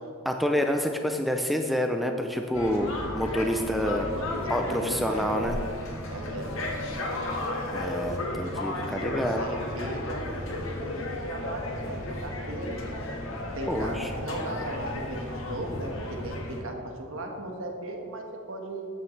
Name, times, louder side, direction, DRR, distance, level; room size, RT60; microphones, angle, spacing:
voice 1, 0.3-4.1 4.5-5.5 7.7-9.4 13.7-14.1, equal, ahead, 4 dB, 0.5 m, -28 dB
sound 1, 2.5-16.6, left 1 dB, 70° left, 1.6 m, -34 dB
voice 2, 4.0-5.5 6.1-6.6 8.7-12.8 13.5-18.9, right 1 dB, 65° right, 2 dB, 1.5 m, -37 dB
13.0 x 8.8 x 3.3 m, 2.4 s
head